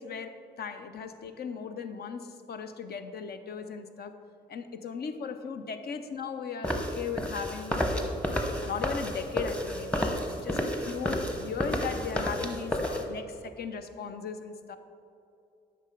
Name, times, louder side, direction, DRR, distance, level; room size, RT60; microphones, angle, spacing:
voice 1, 0.0-4.1 4.5-8.1 8.6-14.8, left 6 dB, 55° left, 9 dB, 0.6 m, -37 dB
sound 1, 6.6-13.0, left 1 dB, 5° left, 0.9 m, -31 dB
8.0 x 5.5 x 3.8 m, 2.7 s
supercardioid pair, 55°, 19 cm